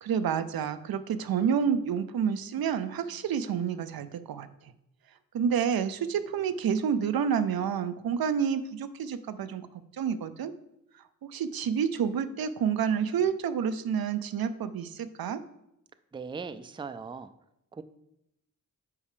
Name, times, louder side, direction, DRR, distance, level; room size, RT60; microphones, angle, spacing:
voice 1, 0.0-4.5 5.3-9.7 10.0-10.5 11.3-15.4, right 7 dB, 90° right, 11 dB, 0.6 m, -29 dB
voice 2, 16.1-17.3 17.7-17.8, right 5 dB, 15° right, 11 dB, 0.3 m, -39 dB
8.4 x 5.5 x 5.0 m, 0.82 s
wide cardioid pair, 140°, 35 cm